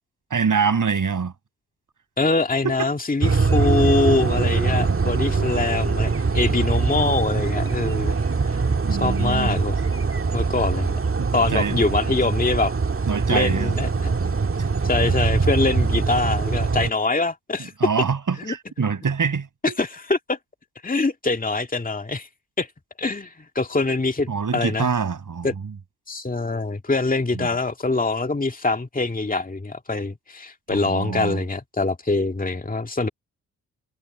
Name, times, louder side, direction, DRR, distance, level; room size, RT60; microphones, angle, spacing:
voice 1, 0.3-1.3 2.6-2.9 8.8-9.6 11.2-11.8 13.1-13.7 17.8-19.7 24.3-25.5 27.3-27.5 30.7-31.4, right 6 dB, 45° right, 6.3 m, -25 dB
voice 2, 2.2-8.2 8.5-8.6 9.0-9.8 10.3-11.0 11.3-12.7 13.3-14.1 14.8-17.7 18.4-18.5 19.6-20.4 20.8-22.3 22.6-22.7 23.0-24.9 25.4-25.5 26.1-33.1, left 3 dB, 20° left, 2.3 m, -24 dB
sound 1, 3.2-16.9, right 4 dB, 30° right, 1.9 m, -23 dB
hypercardioid pair, 45°, 42 cm